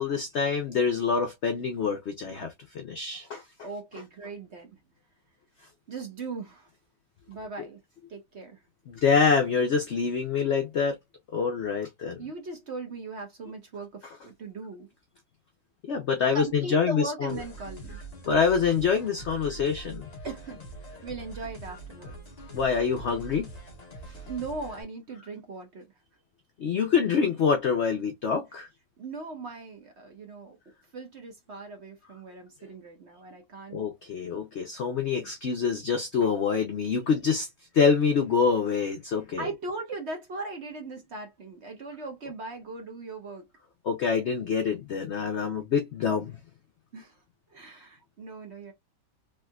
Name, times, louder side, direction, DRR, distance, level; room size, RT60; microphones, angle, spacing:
voice 1, 0.0-3.4 8.9-11.0 11.3-12.2 15.8-17.3 18.3-20.0 22.5-23.5 24.1-24.2 26.6-28.7 33.7-37.5 37.7-39.5 43.8-46.4, left 6 dB, 80° left, 0.6 m, -26 dB
voice 2, 3.6-4.7 5.9-6.7 7.3-7.8 8.1-8.6 12.2-14.9 16.3-18.0 20.2-20.6 21.0-22.2 24.2-25.9 29.0-33.8 39.4-43.5 46.9-47.2 47.5-48.7, right 3 dB, 50° right, 0.9 m, -39 dB
sound 1, 17.3-24.8, right 2 dB, 25° left, 1.1 m, -43 dB
3.4 x 3.0 x 2.3 m
omnidirectional pair, 1.9 m